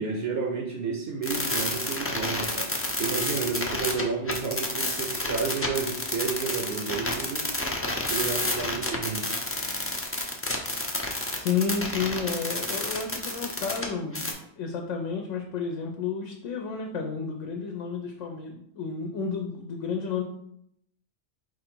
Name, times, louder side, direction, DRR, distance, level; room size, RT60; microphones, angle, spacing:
voice 1, 0.0-2.7 3.0-7.5 8.1-9.3, right 5 dB, 60° right, 2 dB, 0.8 m, -31 dB
sound 1, 1.2-13.9 14.1-14.3, left 2 dB, 25° left, 0.3 m, -29 dB
voice 2, 11.3-20.2, left 5 dB, 85° left, 2 dB, 0.9 m, -31 dB
4.4 x 2.5 x 4.3 m, 0.73 s
omnidirectional pair, 1.3 m